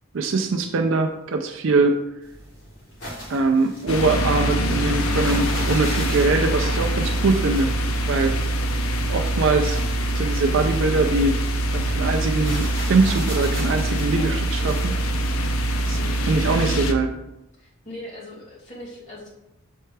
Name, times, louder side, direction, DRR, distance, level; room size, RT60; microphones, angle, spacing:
voice 1, 0.1-2.0 3.3-7.7 8.1-8.3 9.1-9.8 10.1-11.4 11.7-14.9 15.9-16.0 16.3-17.1, right 3 dB, 60° right, 4 dB, 0.4 m, -22 dB
sound 1, 2.2-16.8, equal, 60° left, 2.3 m, -40 dB
sound 2, 3.9-16.9, right 1 dB, 75° left, 0.6 m, -24 dB
voice 2, 15.9-16.2 17.6-19.3, left 1 dB, 35° left, -7 dB, 2.1 m, -40 dB
6.6 x 4.5 x 3.3 m, 0.91 s
head